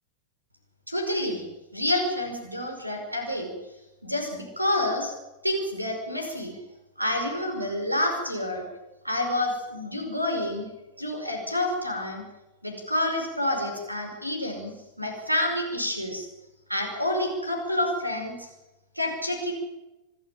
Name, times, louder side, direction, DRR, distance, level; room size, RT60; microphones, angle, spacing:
voice 1, 0.9-1.5 1.7-3.5 4.0-5.1 5.4-6.6 7.0-8.7 9.0-10.7 11.0-12.2 12.6-16.3 16.7-18.5 19.0-19.5, left 1 dB, 85° right, 4 dB, 5.2 m, -28 dB
26.0 x 12.0 x 9.1 m, 1.0 s
figure-of-eight pair, 90°, 0 cm